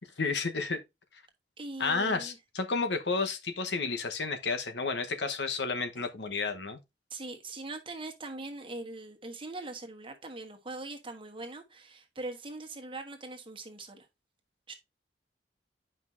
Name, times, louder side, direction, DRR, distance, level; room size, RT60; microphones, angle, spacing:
voice 1, 0.2-0.8 1.8-6.8, left 4 dB, 80° left, 1.1 m, -31 dB
voice 2, 1.6-2.4 5.9-6.3 7.1-14.1 14.7-14.8, right 2 dB, 30° right, 1.3 m, -42 dB
9.5 x 5.3 x 2.6 m
head